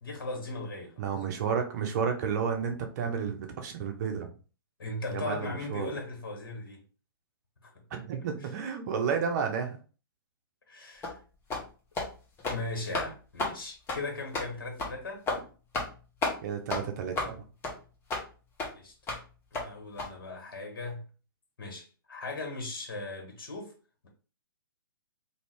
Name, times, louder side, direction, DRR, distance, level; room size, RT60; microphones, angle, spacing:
voice 1, 0.0-1.0 4.8-6.8 7.6-7.7 8.4-8.5 10.7-11.2 12.5-15.2 18.6-18.9 19.5-21.1 21.6-23.7, left 2 dB, 60° left, 1.5 m, -38 dB
voice 2, 1.0-4.3 5.1-5.9 7.9-9.8 16.4-17.4, right 6 dB, 45° right, 0.7 m, -31 dB
sound 1, 11.0-11.2 11.5-11.7 11.9-12.1 12.4-12.6 12.9-13.1 13.4-13.5 13.9-14.0 14.3-14.5 14.8-14.9 15.3-15.4 15.7-15.9 16.2-16.4 16.7-16.8 17.1-17.3 17.6-17.7 18.1-18.2 18.6-18.7 19.1-19.2 19.5-19.7 20.0-20.1, left 3 dB, 20° left, 0.8 m, -31 dB
2.8 x 2.7 x 3.2 m
figure-of-eight pair, 120°, 13 cm